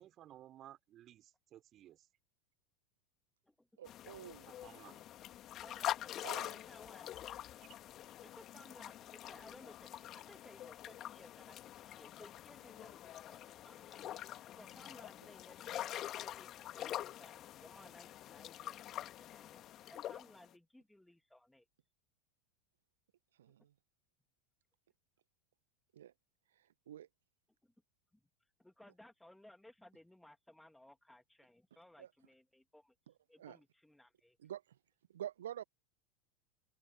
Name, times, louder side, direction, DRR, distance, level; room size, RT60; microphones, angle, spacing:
voice 1, 0.0-2.1 4.5-5.1, right 12 dB, 35° right, 5.4 m, -57 dB
voice 2, 3.8-4.5 6.2-6.6 23.4-23.7 25.9-26.1 26.5-27.1 32.0-32.1 33.4-33.6 34.4-34.8 35.1-35.6, right 11 dB, 70° right, 1.3 m, -48 dB
sound 1, 3.9-20.5, left 12 dB, 35° left, 2.7 m, -45 dB
voice 3, 5.6-7.6 8.2-14.1 14.6-21.7 27.6-27.7 28.1-28.2 28.6-32.9 33.3-34.4, left 1 dB, 5° left, 2.9 m, -60 dB
open air
figure-of-eight pair, 80°, 0 cm